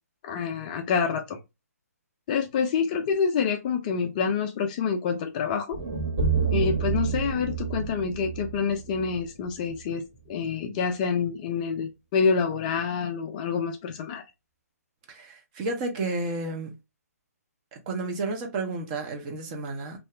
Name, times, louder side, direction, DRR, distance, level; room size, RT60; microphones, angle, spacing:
voice 1, 0.2-1.4 2.3-5.8 6.5-14.2, left 6 dB, 25° left, 0.4 m, -27 dB
sound 1, 5.7-9.9, right 5 dB, 45° right, 1.1 m, -29 dB
voice 2, 15.1-16.7 17.7-20.0, right 3 dB, 25° right, 0.7 m, -31 dB
2.6 x 2.4 x 3.2 m
hypercardioid pair, 145°, 9 cm